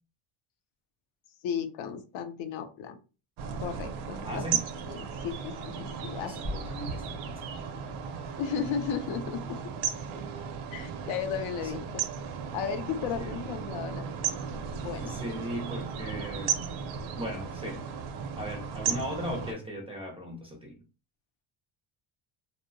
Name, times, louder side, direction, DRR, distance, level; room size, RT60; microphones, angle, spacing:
voice 1, 1.4-3.0 3.6-4.6 4.9-6.4 8.4-9.6 10.7-12.0 12.5-14.1 14.8-15.2, left 7 dB, 65° left, 0.5 m, -34 dB
sound 1, 3.4-19.5, right 7 dB, 75° right, 0.6 m, -35 dB
voice 2, 4.2-4.6 6.1-7.5 11.6-11.7 13.2-13.4 15.0-16.6 17.2-17.9 18.4-20.8, equal, 10° right, 0.4 m, -38 dB
sound 2, 6.4-10.7, left 1 dB, 25° left, 0.7 m, -44 dB
2.6 x 2.0 x 2.5 m
cardioid pair, 135°, 50 cm